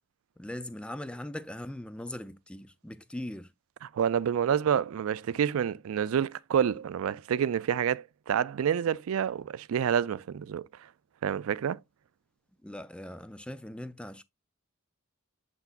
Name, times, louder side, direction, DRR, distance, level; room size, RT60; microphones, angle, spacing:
voice 1, 0.4-3.5 12.6-14.2, left 1 dB, 5° left, 0.3 m, -40 dB
voice 2, 3.9-10.7 11.2-11.8, right 8 dB, 75° right, 0.3 m, -28 dB
6.9 x 5.9 x 2.5 m
head